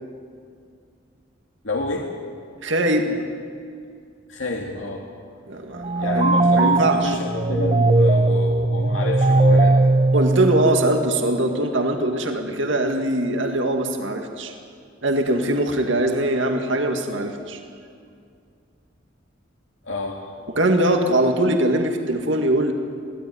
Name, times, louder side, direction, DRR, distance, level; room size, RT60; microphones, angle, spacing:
voice 1, 1.6-2.1 4.3-5.1 6.0-9.8 19.8-20.3, left 2 dB, 85° left, 0 dB, 2.3 m, -28 dB
voice 2, 2.6-3.2 5.5-6.3 6.6-7.2 10.1-14.5 15.0-17.6 20.6-22.7, right 1 dB, 75° right, 4 dB, 2.1 m, -22 dB
sound 1, 5.8-11.2, right 2 dB, 30° right, 0.5 m, -19 dB
23.5 x 16.5 x 9.5 m, 2.3 s
head